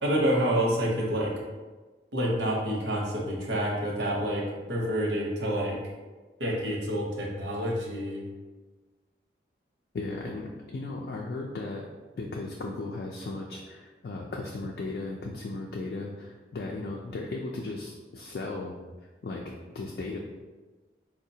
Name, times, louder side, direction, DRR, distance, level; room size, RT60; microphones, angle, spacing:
voice 1, 0.0-1.3 2.1-4.4 4.7-5.8 6.4-8.2, equal, 90° right, -1 dB, 0.8 m, -28 dB
voice 2, 9.9-11.9 12.2-18.8 19.2-20.2, left 2 dB, 60° left, -1 dB, 0.3 m, -36 dB
4.7 x 2.1 x 2.7 m, 1.3 s
head